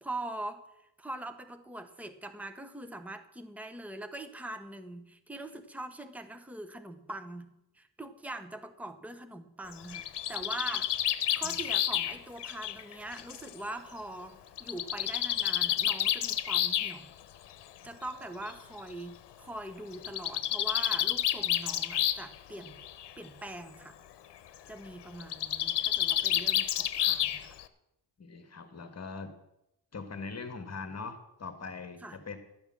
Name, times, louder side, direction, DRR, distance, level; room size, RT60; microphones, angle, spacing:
voice 1, 0.0-7.5 7.7-17.1 17.8-22.8 23.2-24.0 24.7-27.6 32.0-32.2, right 1 dB, 5° right, 9 dB, 1.0 m, -42 dB
Bird, 9.7-13.5 14.6-16.9 18.0-18.1 18.5-18.6 18.8-18.9 19.9-22.3 22.6-23.1 25.2-27.6, left 11 dB, 80° left, 0.9 m, -30 dB
voice 2, 28.2-29.3 29.9-32.4, left 4 dB, 40° left, 8 dB, 1.7 m, -41 dB
12.5 x 8.9 x 7.2 m, 0.86 s
cardioid pair, 115°, 40 cm